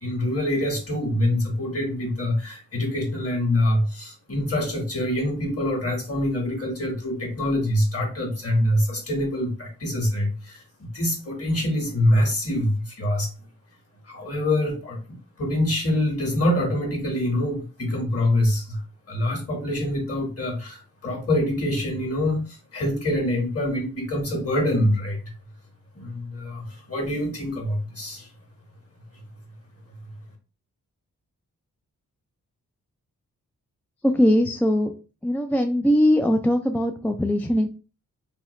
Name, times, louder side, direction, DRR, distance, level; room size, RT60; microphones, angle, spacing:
voice 1, 0.0-13.3 14.0-15.0 15.4-18.8 19.1-25.3 25.9-28.3, left 1 dB, 40° left, 2 dB, 1.6 m, -25 dB
voice 2, 34.1-34.9 35.2-37.7, equal, 5° left, 4 dB, 0.4 m, -21 dB
2.9 x 2.3 x 3.1 m, 0.34 s
cardioid pair, 40°, 35 cm